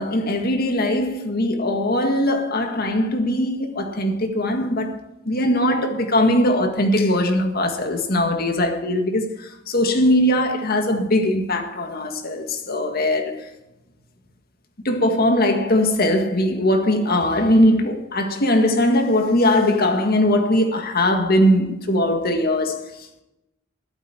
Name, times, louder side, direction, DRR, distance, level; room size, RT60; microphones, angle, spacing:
voice 1, 0.0-4.9 5.2-9.3 9.7-13.4 14.8-22.9, left 1 dB, 50° left, 1.8 m, -20 dB
13.5 x 12.5 x 4.4 m
head